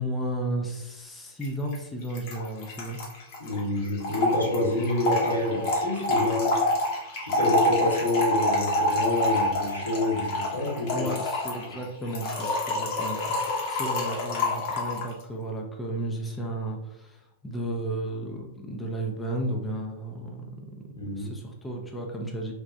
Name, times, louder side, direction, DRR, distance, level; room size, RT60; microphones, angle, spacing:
voice 1, 0.0-3.0 10.9-22.5, right 1 dB, 10° left, 0 dB, 0.4 m, -33 dB
Trickle dribble / Fill (with liquid), 1.4-1.5 1.7-1.8 2.0-15.1, left 1 dB, 45° left, 0.8 m, -27 dB
voice 2, 3.4-6.6 7.2-11.1 11.6-11.7 21.0-21.3, left 2 dB, 90° left, -5 dB, 1.0 m, -27 dB
3.2 x 2.1 x 2.6 m, 0.90 s
figure-of-eight pair, 100°, 0 cm